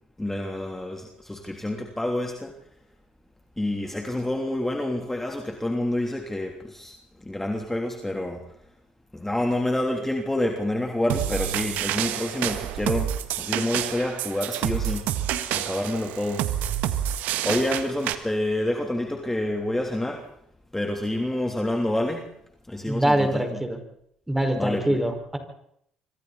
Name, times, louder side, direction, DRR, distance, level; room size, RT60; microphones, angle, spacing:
voice 1, 0.2-2.5 3.6-6.9 7.2-8.4 9.1-15.1 15.5-16.5 17.4-20.2 20.7-22.3 22.7-23.6 24.5-25.0, left 1 dB, 10° left, 2 dB, 3.2 m, -28 dB
sound 1, 11.1-18.1, right 11 dB, 70° right, 1.7 m, -28 dB
voice 2, 22.9-23.8 24.3-25.4, right 1 dB, 10° right, 5 dB, 5.2 m, -24 dB
27.0 x 24.5 x 4.2 m, 0.72 s
hypercardioid pair, 55°, 3 cm